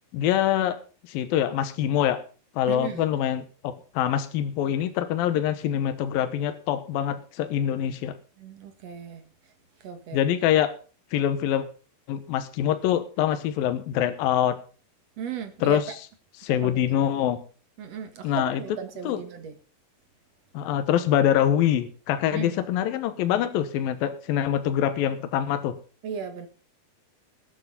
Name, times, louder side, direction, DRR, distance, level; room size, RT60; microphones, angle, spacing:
voice 1, 0.1-0.8 1.1-2.2 2.6-8.2 10.1-10.7 11.1-11.7 12.1-14.6 15.6-15.9 16.4-17.4 18.2-18.6 19.0-19.2 20.5-25.8, left 10 dB, 75° left, 2.7 m, -24 dB
voice 2, 2.7-3.0 8.4-9.2 9.8-10.2 15.2-16.0 16.6-17.1 17.8-19.5 22.3-22.6 26.0-26.5, right 7 dB, 50° right, 2.5 m, -36 dB
19.5 x 8.7 x 4.0 m
omnidirectional pair, 4.4 m